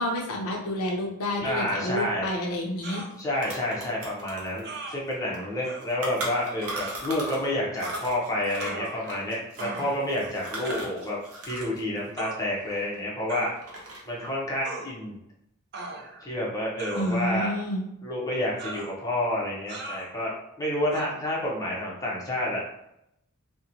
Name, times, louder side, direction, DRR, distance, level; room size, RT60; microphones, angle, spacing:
voice 1, 0.0-3.0 17.0-17.9, left 1 dB, 80° left, 1 dB, 0.5 m, -29 dB
voice 2, 1.4-2.3 3.2-11.2 11.4-13.5 14.1-15.2 16.2-17.5 18.0-22.6, left 1 dB, 15° left, -4 dB, 0.6 m, -29 dB
sound 1, 2.8-3.1 4.6-5.0 5.6-5.8 6.7-7.0 7.8-8.1 8.6-9.2 9.6-10.0 10.6-10.9 12.2-12.4 13.3-13.6 14.6-14.9 15.7-16.3 16.8-17.4 18.6-18.9 19.7-20.1 20.9-21.1, right 3 dB, 50° right, 0.4 m, -38 dB
sound 2, 2.8-2.9 3.1-7.5 7.8-11.8 12.0-13.2 13.6-14.2, right 1 dB, 80° right, 0.7 m, -38 dB
2.8 x 2.1 x 2.5 m, 0.81 s
head